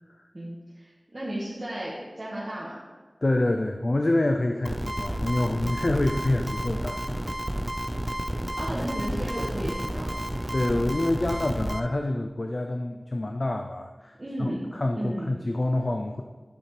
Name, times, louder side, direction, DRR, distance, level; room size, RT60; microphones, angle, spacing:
voice 1, 0.3-2.8 8.6-10.2 14.2-15.3, right 1 dB, 40° right, -8 dB, 1.7 m, -34 dB
voice 2, 3.2-7.2 10.5-16.2, left 1 dB, 55° left, 4 dB, 0.5 m, -27 dB
sound 1, 4.7-11.8, right 1 dB, 15° right, 0.6 m, -31 dB
11.0 x 6.9 x 3.4 m, 1.3 s
wide cardioid pair, 65°, 0 cm